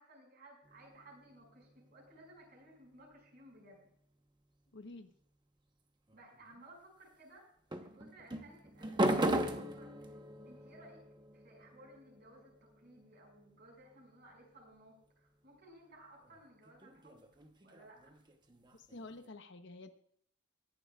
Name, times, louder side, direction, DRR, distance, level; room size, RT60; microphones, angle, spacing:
voice 1, 0.0-3.9 6.1-7.5 7.8-10.2 10.5-11.0 11.3-17.2 17.6-18.1, right 1 dB, 45° right, 0 dB, 5.9 m, -59 dB
sound 1, 0.6-2.5 6.1-6.6 7.7-14.5 16.2-19.3, right 1 dB, 20° right, 1.0 m, -39 dB
voice 2, 4.7-5.1 18.7-19.9, left 2 dB, 55° left, 7 dB, 1.1 m, -49 dB
23.5 x 11.0 x 2.4 m, 0.66 s
head